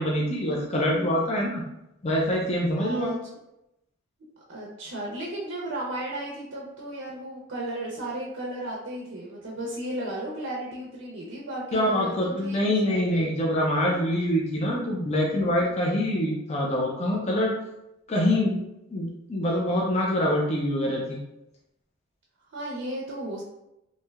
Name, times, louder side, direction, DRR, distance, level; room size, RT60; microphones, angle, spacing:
voice 1, 0.0-1.6 2.0-3.1 11.7-17.5 18.1-18.6 18.9-21.2, left 1 dB, 30° left, -2 dB, 0.4 m, -25 dB
voice 2, 2.8-3.2 4.5-13.3 22.5-23.4, right 1 dB, 65° right, -3 dB, 0.5 m, -34 dB
3.1 x 2.6 x 2.3 m, 0.88 s
head